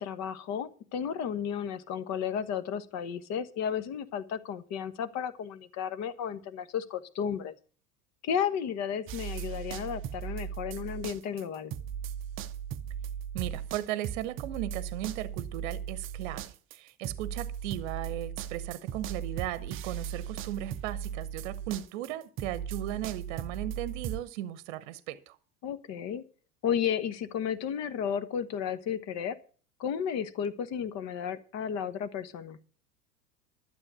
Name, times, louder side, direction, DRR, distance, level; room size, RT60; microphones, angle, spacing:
voice 1, 0.0-7.5 8.2-11.7 25.6-26.2 26.6-29.4 29.8-32.6, left 8 dB, 35° left, 1.2 m, -33 dB
sound 1, 9.1-11.4 11.7-24.2, right 9 dB, 25° right, 0.7 m, -37 dB
voice 2, 13.3-16.4 16.7-25.4, right 13 dB, 50° right, 1.0 m, -36 dB
12.5 x 7.9 x 6.8 m
figure-of-eight pair, 85°, 46 cm